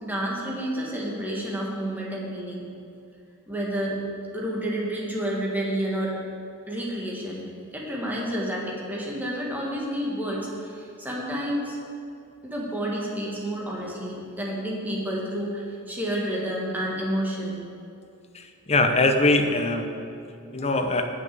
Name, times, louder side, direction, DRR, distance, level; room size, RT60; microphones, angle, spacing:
voice 1, 0.0-2.6 3.5-4.0 4.3-6.2 6.7-7.4 7.7-11.8 12.4-17.6, right 1 dB, 10° right, -4 dB, 1.7 m, -30 dB
voice 2, 18.3-19.9 20.5-21.1, left 2 dB, 30° left, 6 dB, 0.7 m, -22 dB
7.7 x 6.4 x 7.6 m, 2.5 s
head